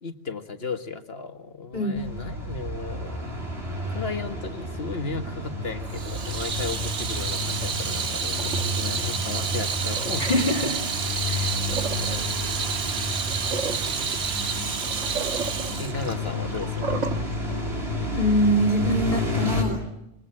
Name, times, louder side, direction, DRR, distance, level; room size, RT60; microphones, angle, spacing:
voice 1, 0.0-3.3 3.9-10.5 15.8-17.1, left 4 dB, 60° left, 8 dB, 1.9 m, -35 dB
voice 2, 1.7-2.1 10.3-10.8 11.3-11.5 18.1-19.8, equal, 40° left, 6 dB, 2.7 m, -23 dB
sound 1, 2.0-19.6, left 1 dB, 60° right, 8.1 m, -31 dB
Water tap faucet / Sink (filling or washing), 5.9-17.2, right 6 dB, 90° right, 1.8 m, -30 dB
26.0 x 22.0 x 9.9 m, 0.88 s
omnidirectional pair, 1.2 m